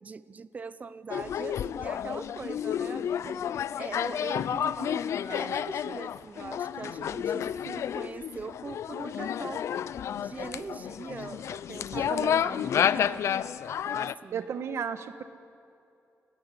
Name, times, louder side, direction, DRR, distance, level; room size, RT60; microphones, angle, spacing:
voice 1, 0.0-3.4 3.8-9.7 10.2-12.3 12.9-13.4 13.8-14.5, right 4 dB, 30° right, 15 dB, 0.7 m, -41 dB
sound 1, 1.1-14.1, left 9 dB, 70° left, 0.5 m, -31 dB
voice 2, 12.0-12.6 14.3-15.2, right 7 dB, 65° right, 10 dB, 1.4 m, -34 dB
29.5 x 15.0 x 9.8 m, 2.7 s
wide cardioid pair, 165°, 5 cm